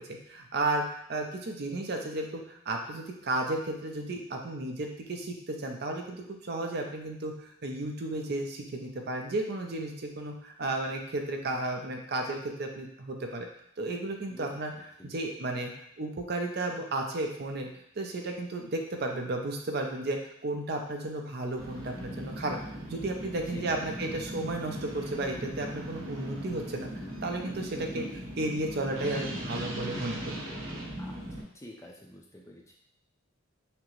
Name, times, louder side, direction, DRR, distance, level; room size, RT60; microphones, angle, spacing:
voice 1, 0.0-13.5 13.8-15.7 16.0-17.7 18.0-22.6 22.9-30.4, right 2 dB, 50° right, 2 dB, 0.5 m, -33 dB
sound 1, 21.6-31.4, right 1 dB, 65° right, 1.0 m, -39 dB
voice 2, 23.5-24.3 27.8-28.1 31.0-31.2 31.5-32.7, equal, 15° left, -1 dB, 0.4 m, -45 dB
5.9 x 2.0 x 3.1 m, 0.73 s
head